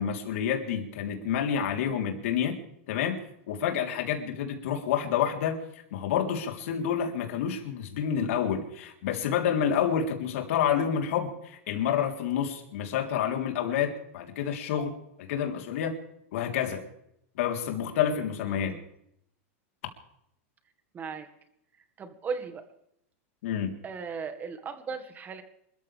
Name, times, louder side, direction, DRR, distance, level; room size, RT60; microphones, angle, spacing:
voice 1, 0.0-2.6 2.9-3.2 3.5-14.9 15.2-16.0 16.3-16.8 17.4-18.8 23.4-23.8, left 8 dB, 70° left, 3 dB, 3.7 m, -28 dB
voice 2, 18.4-18.9 20.9-21.3 21.7-22.7 23.8-25.4, right 5 dB, 25° right, 8 dB, 1.9 m, -37 dB
27.5 x 14.0 x 3.5 m, 0.76 s
supercardioid pair, 135°, 8 cm